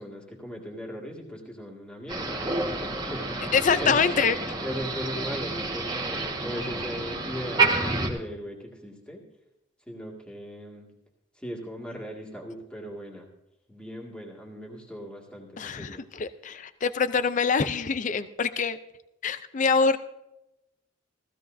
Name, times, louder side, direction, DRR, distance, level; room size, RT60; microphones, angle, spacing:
voice 1, 0.0-4.1 4.6-9.3 9.9-10.9 11.4-13.3 13.7-16.0, equal, 5° left, -1 dB, 2.0 m, -38 dB
Motor vehicle (road), 2.1-8.1, right 3 dB, 20° right, 1.5 m, -29 dB
voice 2, 3.5-4.4 15.6-18.8 19.2-20.0, left 5 dB, 40° left, 12 dB, 0.5 m, -25 dB
15.5 x 15.5 x 2.7 m, 0.91 s
head